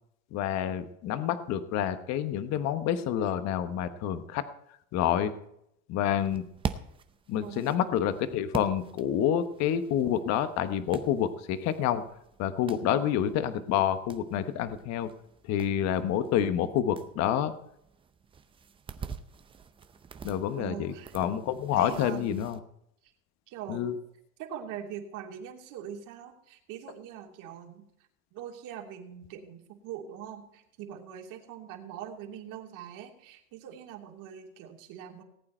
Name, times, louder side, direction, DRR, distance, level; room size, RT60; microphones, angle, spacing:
voice 1, 0.3-4.5 4.9-5.3 5.9-6.5 7.3-12.0 12.4-15.1 15.5-17.5 20.2-22.6 23.7-24.0, left 10 dB, 40° left, 10 dB, 1.1 m, -28 dB
sound 1, 6.2-22.6, right 6 dB, 15° right, 0.6 m, -45 dB
voice 2, 7.4-7.8 12.7-13.0 20.6-21.1 21.7-22.3 23.5-23.9 24.4-27.9 28.3-35.2, right 9 dB, 45° right, 1 dB, 3.0 m, -42 dB
18.5 x 8.7 x 4.4 m, 0.76 s
supercardioid pair, 130°, 42 cm